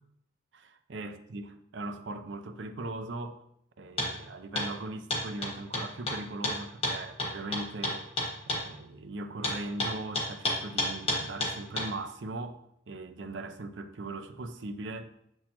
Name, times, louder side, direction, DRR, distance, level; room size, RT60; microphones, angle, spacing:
voice 1, 0.5-3.4 3.8-8.1 8.5-15.1, right 2 dB, 80° right, 0.6 m, -39 dB
sound 1, 4.0-4.1 4.6-4.7 5.1-8.6 9.4-11.9, left 1 dB, 30° left, 1.5 m, -30 dB
7.4 x 6.2 x 2.9 m
head